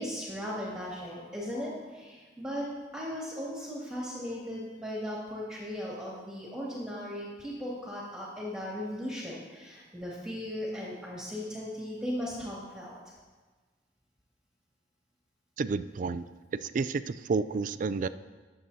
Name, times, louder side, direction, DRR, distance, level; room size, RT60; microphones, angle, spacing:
voice 1, 0.0-2.7 2.9-12.9, equal, 5° right, -6 dB, 2.3 m, -37 dB
voice 2, 15.6-16.3 16.5-18.1, right 4 dB, 45° right, 13 dB, 0.3 m, -30 dB
21.5 x 7.6 x 2.8 m, 1.3 s
head